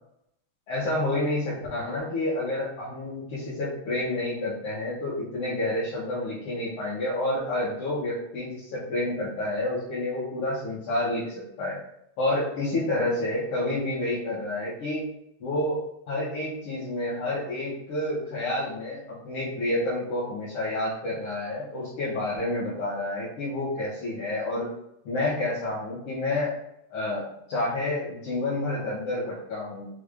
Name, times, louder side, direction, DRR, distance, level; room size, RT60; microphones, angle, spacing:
voice 1, 0.7-11.8 12.2-15.1 15.4-24.7 25.0-26.5 26.9-27.2 27.5-29.9, left 1 dB, 60° left, -9 dB, 1.7 m, -29 dB
5.1 x 2.5 x 3.4 m, 0.77 s
omnidirectional pair, 3.3 m